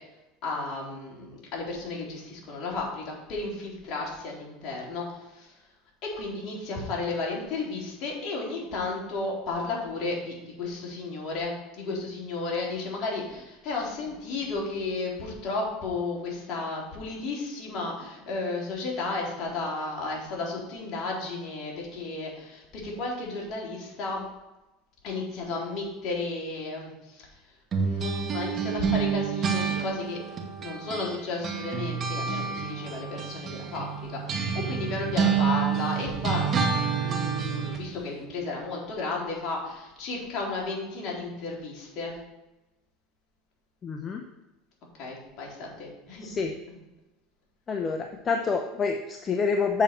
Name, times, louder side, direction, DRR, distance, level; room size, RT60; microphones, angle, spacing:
voice 1, 0.4-5.5 6.0-24.2 25.0-27.3 27.8-30.2 30.6-36.4 37.0-42.1 45.0-46.8, left 3 dB, 50° left, -2 dB, 3.2 m, -33 dB
sound 1, 27.7-31.2 31.4-37.8, right 6 dB, 35° right, 1.3 m, -28 dB
voice 2, 43.8-44.2 46.2-46.5 47.7-49.8, left 5 dB, 30° left, 3 dB, 0.8 m, -27 dB
7.4 x 6.8 x 4.4 m, 1.0 s
supercardioid pair, 110°, 0 cm